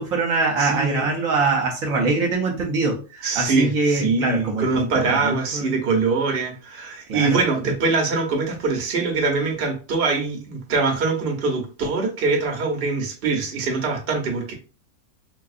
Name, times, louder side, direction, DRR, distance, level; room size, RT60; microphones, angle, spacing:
voice 1, 0.0-5.7 7.1-7.4, right 3 dB, 65° right, 0 dB, 1.2 m, -23 dB
voice 2, 0.6-1.1 3.2-14.5, right 4 dB, 45° right, 1 dB, 1.0 m, -23 dB
3.8 x 2.7 x 2.4 m, 0.34 s
omnidirectional pair, 1.6 m